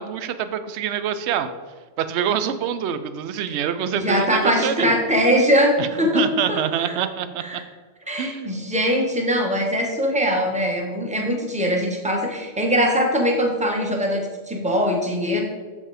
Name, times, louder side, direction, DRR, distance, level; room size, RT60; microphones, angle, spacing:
voice 1, 0.0-1.5 2.0-5.0 5.8-7.4 8.2-8.5, right 8 dB, 65° right, 11 dB, 0.8 m, -25 dB
voice 2, 3.9-6.2 6.5-6.9 7.4-7.6 8.1-15.4, equal, 5° right, 0 dB, 1.0 m, -22 dB
7.1 x 5.4 x 4.8 m, 1.5 s
omnidirectional pair, 1.4 m